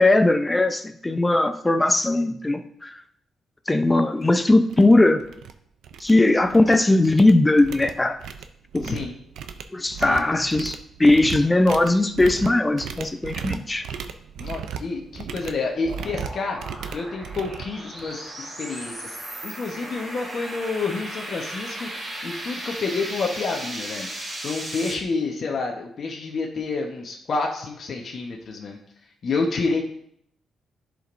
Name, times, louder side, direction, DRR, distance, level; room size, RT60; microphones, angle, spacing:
voice 1, 0.0-2.9 3.7-5.2 6.0-8.2 8.7-9.0 9.7-13.9, left 2 dB, 15° left, 8 dB, 0.7 m, -19 dB
sound 1, 4.2-4.3 4.7-4.9 5.2-5.5 5.8-6.8 7.0-18.3, right 7 dB, 85° right, 0.5 m, -36 dB
voice 2, 8.8-9.1 10.0-10.2 14.4-16.6 16.9-19.2 19.4-24.1 24.4-28.8 29.2-29.8, left 4 dB, 55° left, 0 dB, 1.1 m, -29 dB
sound 2, 14.8-25.0, right 1 dB, 25° right, 2.9 m, -36 dB
11.0 x 5.1 x 2.6 m, 0.68 s
cardioid pair, 100°, 0 cm